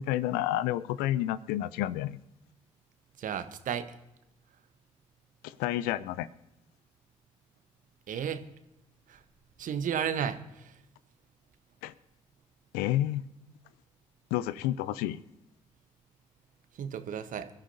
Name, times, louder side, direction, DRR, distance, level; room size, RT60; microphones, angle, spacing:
voice 1, 0.0-2.2 5.4-6.3 11.8-11.9 12.7-13.2 14.3-15.2, left 13 dB, 70° left, 18 dB, 0.5 m, -30 dB
voice 2, 3.2-4.0 8.1-8.4 9.1-9.2 9.6-10.8 16.7-17.5, right 8 dB, 55° right, 10 dB, 1.2 m, -33 dB
26.5 x 13.0 x 2.8 m, 0.90 s
figure-of-eight pair, 40°, 16 cm